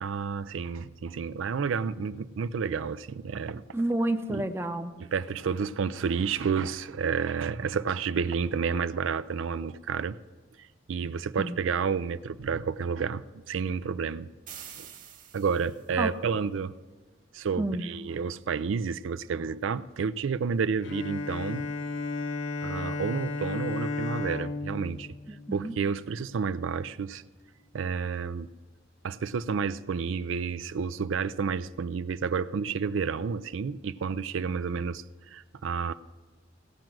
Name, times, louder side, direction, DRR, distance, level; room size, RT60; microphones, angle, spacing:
voice 1, 0.0-3.6 4.3-4.4 5.0-10.2 10.6-14.3 14.8-14.9 15.3-16.7 17.3-21.7 22.6-25.1 25.5-27.2 27.7-28.5 29.0-35.9, right 6 dB, 80° right, 14 dB, 0.4 m, -30 dB
voice 2, 3.7-4.9 11.4-11.5 16.0-16.1 17.6-17.9 25.3-25.7, right 1 dB, 10° right, 7 dB, 0.6 m, -29 dB
sound 1, 14.5-16.0, right 9 dB, 40° right, 1.4 m, -46 dB
Bowed string instrument, 20.8-26.3, left 3 dB, 75° left, 1.1 m, -34 dB
17.0 x 5.9 x 7.6 m, 1.4 s
head